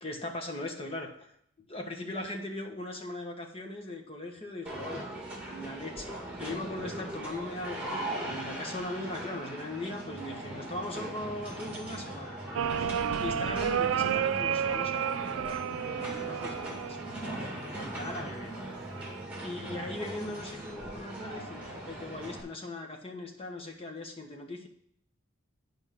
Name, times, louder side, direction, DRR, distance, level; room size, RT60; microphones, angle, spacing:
voice 1, 0.0-1.3 1.7-5.1 5.4-12.3 12.8-18.5 19.4-24.7, left 2 dB, 25° left, 2 dB, 1.3 m, -39 dB
sound 1, 4.7-22.4, right 1 dB, 5° right, 2.0 m, -39 dB
sound 2, 12.6-17.6 18.7-19.2, right 8 dB, 70° right, 0.3 m, -31 dB
9.0 x 5.3 x 6.0 m, 0.70 s
head